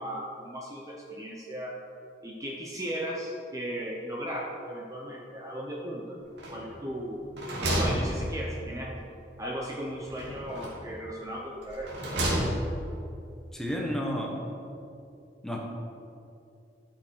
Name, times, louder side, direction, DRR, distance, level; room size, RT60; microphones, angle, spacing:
voice 1, 0.0-1.7 2.2-6.0 6.5-7.2 7.6-9.0 9.4-11.9, equal, 20° right, -3 dB, 0.8 m, -36 dB
sound 1, 6.4-6.9 7.2-8.8 10.1-10.9 11.6-12.9, right 1 dB, 65° right, 2.4 m, -31 dB
voice 2, 13.5-14.5 15.4-15.6, equal, 5° left, -1 dB, 1.2 m, -32 dB
13.0 x 6.1 x 4.6 m, 2.6 s
head